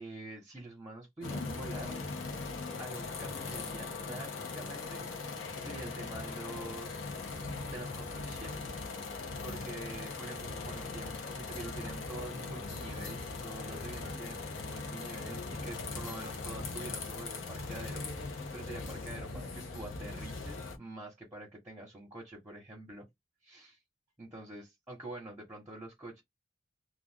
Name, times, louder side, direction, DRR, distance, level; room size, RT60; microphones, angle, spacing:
voice 1, 0.0-2.1 2.8-5.1 5.5-7.1 7.4-8.6 9.4-23.1 23.4-23.8 24.2-26.2, right 2 dB, 10° right, 1.0 m, -46 dB
sound 1, 1.2-20.8, left 3 dB, 70° left, 0.8 m, -40 dB
2.4 x 2.4 x 3.5 m
head